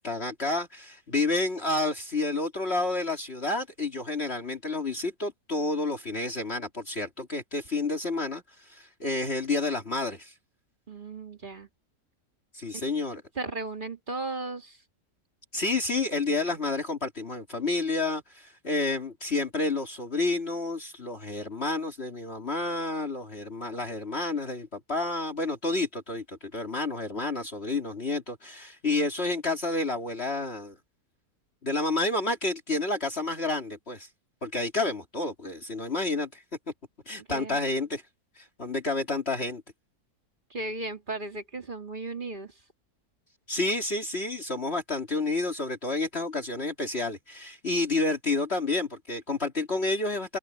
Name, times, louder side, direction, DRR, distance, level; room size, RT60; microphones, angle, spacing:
voice 1, 0.0-10.3 12.5-13.2 15.5-30.8 31.6-34.1 34.4-36.4 37.1-38.0 38.4-39.6 43.5-50.4, left 2 dB, 40° left, 2.9 m, -30 dB
voice 2, 10.9-11.7 12.7-12.8 13.3-14.8 37.2-37.6 40.5-42.5, right 2 dB, 30° right, 2.5 m, -36 dB
omnidirectional pair, 1.6 m